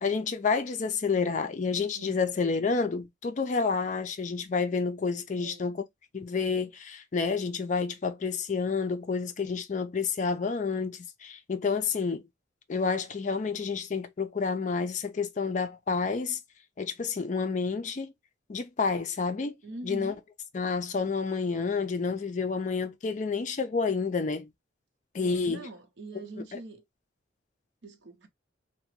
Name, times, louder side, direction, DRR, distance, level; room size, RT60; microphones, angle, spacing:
voice 1, 0.0-5.8 6.1-12.2 12.7-16.4 16.8-18.1 18.5-19.6 19.8-20.1 20.5-24.5 25.1-25.7 26.5-26.6, left 4 dB, 40° left, 0.4 m, -29 dB
voice 2, 5.4-5.7 19.6-20.2 25.2-26.8 27.8-28.3, right 2 dB, 70° right, 0.6 m, -43 dB
2.8 x 2.1 x 3.0 m
head